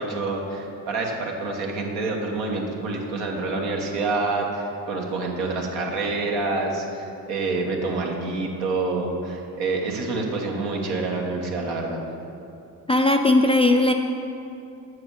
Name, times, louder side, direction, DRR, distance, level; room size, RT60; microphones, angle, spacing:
voice 1, 0.0-12.0, right 3 dB, 75° right, 0 dB, 1.3 m, -27 dB
voice 2, 12.9-13.9, left 2 dB, 15° left, 4 dB, 0.3 m, -18 dB
7.5 x 4.8 x 6.3 m, 2.7 s
hypercardioid pair, 50°, 46 cm